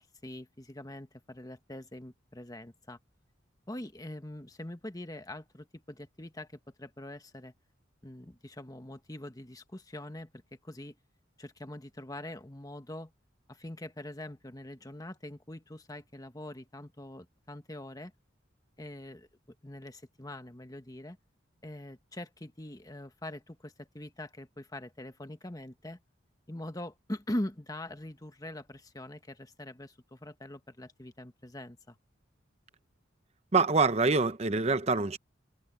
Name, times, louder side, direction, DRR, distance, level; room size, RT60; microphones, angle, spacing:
voice 1, 0.0-3.0 3.7-7.5 8.0-11.0 11.4-13.1 13.5-18.1 18.8-19.3 19.6-21.2 21.6-26.0 26.5-31.9, left 1 dB, 20° left, 1.4 m, -43 dB
voice 2, 33.5-35.2, right 4 dB, 35° right, 0.7 m, -25 dB
head